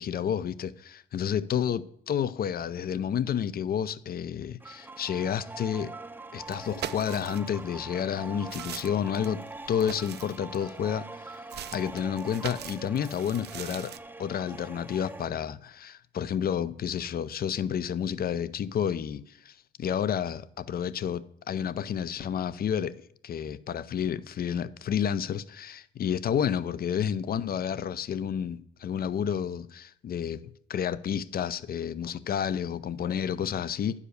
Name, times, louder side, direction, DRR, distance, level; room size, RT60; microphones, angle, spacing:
voice 1, 0.0-5.9 6.3-9.4 9.7-11.0 11.7-13.9 14.2-22.9 23.2-30.4 30.7-34.0, left 8 dB, 50° left, 0.6 m, -30 dB
sound 1, 4.6-15.3, right 2 dB, 10° right, 0.5 m, -43 dB
sound 2, 6.5-7.6 8.1-10.9 11.5-14.0, right 10 dB, 55° right, 0.5 m, -41 dB
10.0 x 4.9 x 6.6 m
cardioid pair, 90°, 20 cm